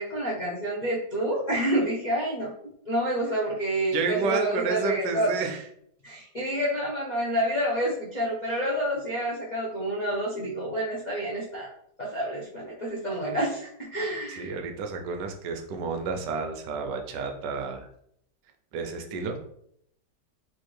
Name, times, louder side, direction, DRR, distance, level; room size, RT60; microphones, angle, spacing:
voice 1, 0.0-5.3 6.0-11.7 12.0-14.5, right 1 dB, 70° left, -6 dB, 0.4 m, -28 dB
voice 2, 3.9-5.6 14.3-17.9 18.7-19.4, right 4 dB, 85° right, 4 dB, 1.3 m, -31 dB
4.3 x 2.5 x 3.1 m, 0.70 s
omnidirectional pair, 1.9 m